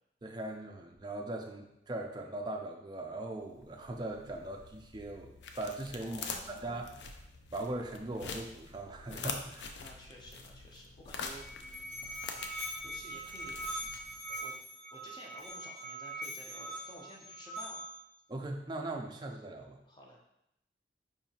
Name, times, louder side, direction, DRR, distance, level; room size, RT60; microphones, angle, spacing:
voice 1, 0.2-7.0 7.5-9.7 18.3-19.8, right 2 dB, 25° right, 2 dB, 0.4 m, -40 dB
sound 1, 3.4-14.4, left 5 dB, 75° left, 0.4 m, -45 dB
voice 2, 6.0-6.8 9.7-12.2 12.8-13.7 14.4-14.6 14.9-17.8 19.8-20.2, equal, 25° left, -1 dB, 0.6 m, -53 dB
Musical instrument, 11.2-18.1, right 1 dB, 45° left, 1.3 m, -42 dB
4.9 x 2.7 x 2.8 m, 0.83 s
head